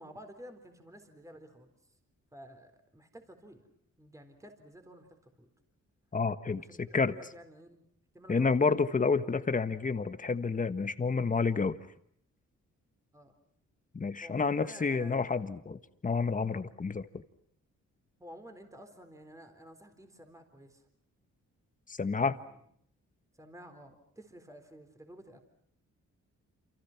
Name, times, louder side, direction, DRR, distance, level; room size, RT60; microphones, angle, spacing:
voice 1, 0.0-1.7 2.3-3.7 4.0-5.5 6.6-7.9 8.1-8.6 13.1-13.4 14.2-15.2 18.2-20.8 22.1-22.6 23.4-25.4, equal, 10° right, 6 dB, 4.0 m, -52 dB
voice 2, 6.1-7.1 8.3-11.8 13.9-17.2 21.9-22.4, left 4 dB, 25° left, 11 dB, 1.5 m, -29 dB
29.5 x 28.5 x 5.9 m, 0.66 s
cardioid pair, 120°, 30 cm